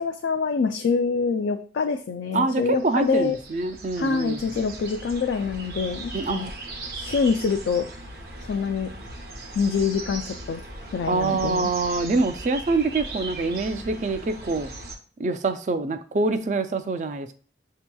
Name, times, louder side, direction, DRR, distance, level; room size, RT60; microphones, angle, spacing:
voice 1, 0.0-3.4 4.0-6.5 6.9-7.9 8.5-8.9 9.6-10.6 10.9-11.7, left 5 dB, 80° left, 6 dB, 0.3 m, -25 dB
voice 2, 2.3-4.6 6.1-6.5 11.0-14.7 15.2-17.3, right 3 dB, 40° right, 9 dB, 0.3 m, -25 dB
sound 1, 2.7-15.0, right 2 dB, 60° right, 0.7 m, -38 dB
6.8 x 2.8 x 2.2 m, 0.42 s
head